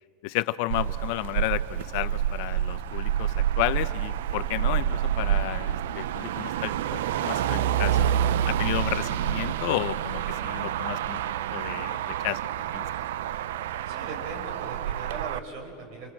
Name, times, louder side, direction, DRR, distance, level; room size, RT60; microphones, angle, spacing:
voice 1, 0.2-8.1 8.5-11.2 11.5-12.4 12.7-12.9, left 18 dB, 65° left, 14 dB, 0.8 m, -32 dB
Motor vehicle (road), 0.7-15.4, right 10 dB, 85° right, 0.6 m, -28 dB
voice 2, 13.8-16.1, right 4 dB, 65° right, 3 dB, 6.4 m, -39 dB
28.5 x 25.0 x 7.5 m, 2.4 s
supercardioid pair, 125°, 0 cm